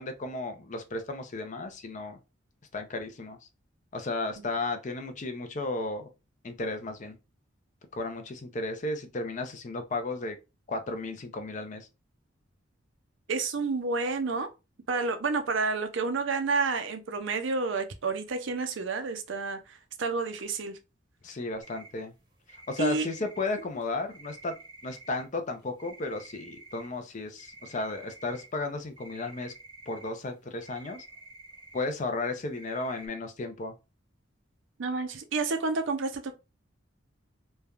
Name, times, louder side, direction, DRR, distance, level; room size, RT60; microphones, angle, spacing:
voice 1, 0.0-2.2 2.7-3.4 3.9-6.1 6.4-7.2 7.9-10.4 10.7-11.9 21.2-22.1 22.7-24.5 24.8-29.5 29.9-31.0 31.7-33.7, left 2 dB, 40° left, 0.5 m, -34 dB
voice 2, 13.3-14.5 14.9-20.8 22.8-23.1 34.8-36.3, right 4 dB, 70° right, 0.5 m, -30 dB
sound 1, 21.6-22.0 22.5-25.3 25.6-27.0 27.4-31.9 32.3-33.1, right 2 dB, 25° right, 0.8 m, -50 dB
3.2 x 2.2 x 2.4 m
head